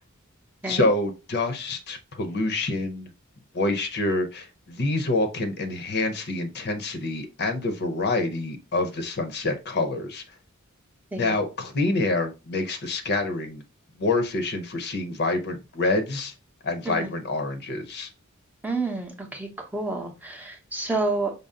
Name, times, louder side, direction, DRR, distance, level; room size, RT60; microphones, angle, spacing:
voice 1, 0.7-3.1 3.5-10.2 11.1-13.6 14.0-16.3 16.6-18.1, left 2 dB, 50° left, 7 dB, 0.7 m, -27 dB
voice 2, 18.6-21.3, right 3 dB, 10° right, 1 dB, 0.7 m, -29 dB
5.3 x 2.0 x 3.6 m, 0.29 s
head